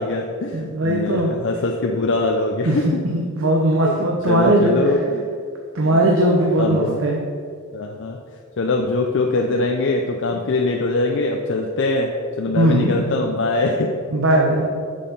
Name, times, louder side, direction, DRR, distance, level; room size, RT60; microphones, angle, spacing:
voice 1, 0.0-3.0 3.4-3.5 3.8-5.3 5.9-6.1 6.6-7.0 7.7-8.2 8.6-12.1 12.4-13.9, left 2 dB, 60° left, 1 dB, 0.5 m, -22 dB
voice 2, 0.5-1.3 2.6-4.8 5.7-7.2 12.5-13.1 14.1-14.6, right 1 dB, 65° right, 0 dB, 0.8 m, -19 dB
6.6 x 5.7 x 5.3 m, 2.2 s
head